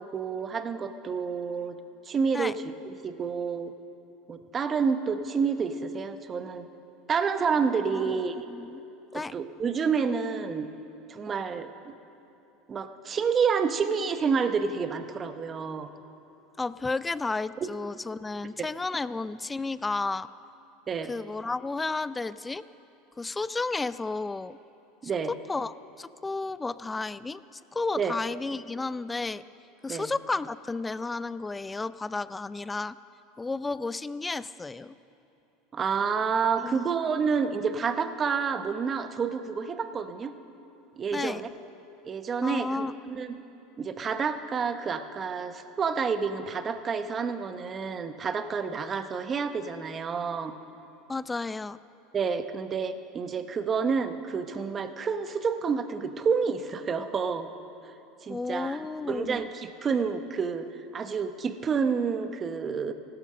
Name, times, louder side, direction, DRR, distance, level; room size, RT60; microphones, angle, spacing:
voice 1, 0.0-1.8 2.0-2.5 2.8-3.7 4.3-6.7 7.1-8.4 9.1-10.7 11.1-11.9 12.7-15.9 17.6-17.7 18.6-18.7 20.9-21.1 25.0-25.3 28.0-28.1 29.9-30.1 35.7-40.3 41.0-41.5 42.0-43.4 43.8-50.5 52.1-57.5 57.8-57.9 58.2-58.8 59.1-60.7 60.9-62.9, right 5 dB, 30° right, 9 dB, 0.9 m, -29 dB
voice 2, 7.9-8.8 9.1-9.3 16.6-20.3 21.1-22.6 23.2-24.6 25.5-29.4 29.8-33.0 33.4-35.0 36.6-36.9 41.1-41.4 42.4-42.9 51.1-51.8 58.3-59.5, left 3 dB, 15° left, 16 dB, 0.4 m, -32 dB
15.5 x 12.0 x 6.6 m, 2.9 s
supercardioid pair, 115°, 0 cm